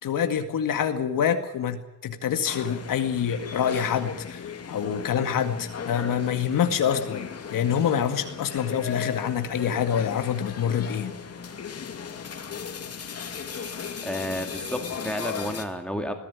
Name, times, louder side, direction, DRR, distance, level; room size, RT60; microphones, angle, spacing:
voice 1, 0.0-11.1, left 8 dB, 75° left, 7 dB, 2.2 m, -26 dB
sound 1, 2.4-15.6, left 6 dB, 45° left, 2.6 m, -37 dB
voice 2, 14.0-16.3, left 1 dB, 5° left, 5 dB, 2.1 m, -31 dB
21.5 x 15.5 x 9.8 m, 0.88 s
wide cardioid pair, 165°, 33 cm